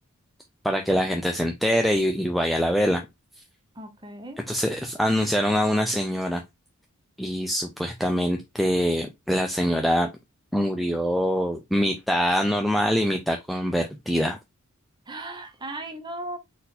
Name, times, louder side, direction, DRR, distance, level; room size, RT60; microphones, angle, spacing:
voice 1, 0.6-3.0 4.5-6.4 7.2-10.1 10.5-14.4, equal, ahead, 0.4 m, -24 dB
voice 2, 3.7-4.4 15.1-16.4, right 1 dB, 20° right, 0.9 m, -37 dB
4.1 x 2.5 x 4.1 m
head